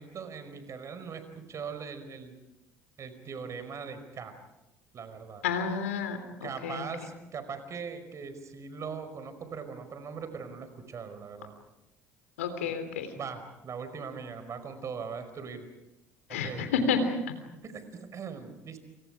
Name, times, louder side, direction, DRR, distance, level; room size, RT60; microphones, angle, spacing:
voice 1, 0.0-2.4 3.0-4.3 4.9-5.5 6.4-11.5 12.7-12.8 13.1-15.7 16.3-16.7 17.6-18.8, right 6 dB, 45° right, 10 dB, 5.1 m, -40 dB
voice 2, 5.4-6.8 12.4-13.1 16.3-17.2, left 5 dB, 80° left, 8 dB, 3.4 m, -30 dB
29.0 x 28.5 x 5.0 m, 0.95 s
hypercardioid pair, 60°, 7 cm